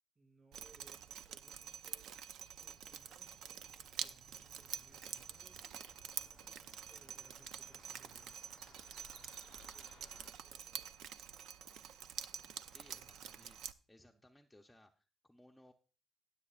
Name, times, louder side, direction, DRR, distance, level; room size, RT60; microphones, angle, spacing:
voice 1, 0.1-2.2 2.6-5.7 6.1-8.5 8.8-11.0 12.9-13.5 14.0-14.2, right 3 dB, 35° right, 4 dB, 6.4 m, -68 dB
Drip, 0.5-13.7, right 9 dB, 80° right, 0.5 m, -48 dB
Cricket, 2.4-8.9, right 2 dB, 65° right, 7.0 m, -70 dB
sound 1, 4.6-10.3, left 8 dB, 60° left, 0.5 m, -66 dB
voice 2, 12.7-15.7, left 1 dB, 5° left, 2 dB, 0.7 m, -64 dB
18.5 x 7.5 x 2.4 m, 0.35 s
cardioid pair, 90°, 0 cm